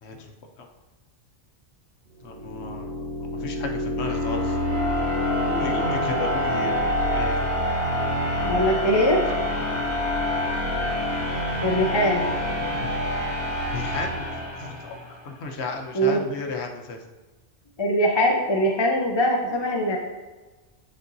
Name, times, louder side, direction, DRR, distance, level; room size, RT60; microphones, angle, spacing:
voice 1, 0.0-0.3 0.6-0.7 2.2-4.6 5.5-7.4 9.6-9.7 12.6-12.9 13.7-14.3 14.6-15.0 15.2-17.0, left 3 dB, 70° left, 4 dB, 1.0 m, -34 dB
sound 1, 2.2-15.1, left 1 dB, 55° right, 2.3 m, -26 dB
voice 2, 8.4-9.2 11.6-12.3 15.9-16.2 17.8-20.0, equal, 35° left, 1 dB, 0.5 m, -22 dB
8.5 x 4.4 x 2.6 m, 1.2 s
omnidirectional pair, 1.2 m